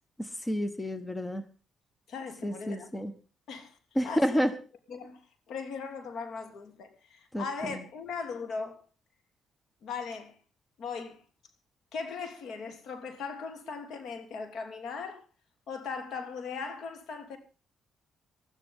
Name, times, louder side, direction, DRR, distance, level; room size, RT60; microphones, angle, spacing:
voice 1, 0.2-1.4 2.4-3.1 3.9-4.5 7.3-7.8, equal, 15° left, 1.3 m, -30 dB
voice 2, 2.1-2.9 3.5-3.8 4.0-4.4 4.9-8.8 9.8-10.4 10.8-11.2 11.9-15.2 15.7-17.4, left 5 dB, 70° left, 3.1 m, -39 dB
20.5 x 13.5 x 3.7 m
cardioid pair, 90°, 0 cm